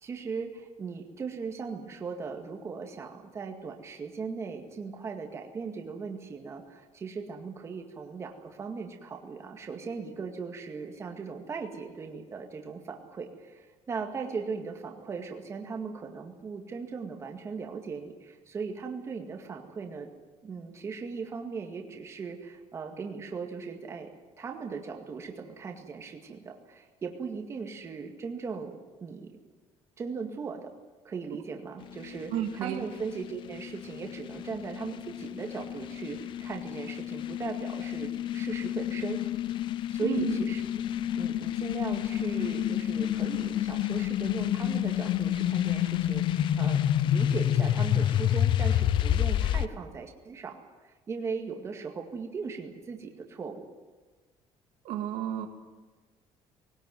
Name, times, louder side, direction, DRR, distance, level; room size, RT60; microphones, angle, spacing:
voice 1, 0.0-20.1 20.4-24.1 24.4-29.3 30.0-30.7 31.0-39.2 39.9-40.6 40.9-50.6 50.8-53.7, right 5 dB, 25° right, 3 dB, 2.1 m, -38 dB
sound 1, 31.8-49.7, left 11 dB, 45° left, 0.6 m, -29 dB
voice 2, 32.3-32.8 40.0-40.4 54.9-55.5, right 10 dB, 85° right, 4 dB, 2.4 m, -31 dB
20.0 x 19.0 x 9.4 m, 1.3 s
cardioid pair, 180°, 11 cm